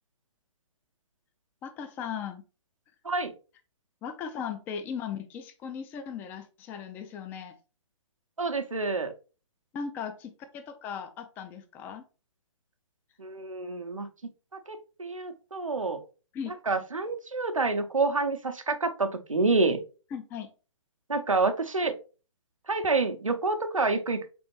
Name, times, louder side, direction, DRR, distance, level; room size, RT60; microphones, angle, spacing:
voice 1, 1.6-2.4 4.0-7.6 9.7-12.0 16.3-16.5 20.1-20.5, left 7 dB, 10° left, 8 dB, 0.3 m, -37 dB
voice 2, 8.4-9.1 13.2-14.1 14.7-16.0 16.7-19.8 21.1-21.9 22.7-24.3, right 3 dB, 90° right, 6 dB, 0.7 m, -28 dB
4.1 x 3.4 x 3.0 m, 0.34 s
figure-of-eight pair, 125°, 16 cm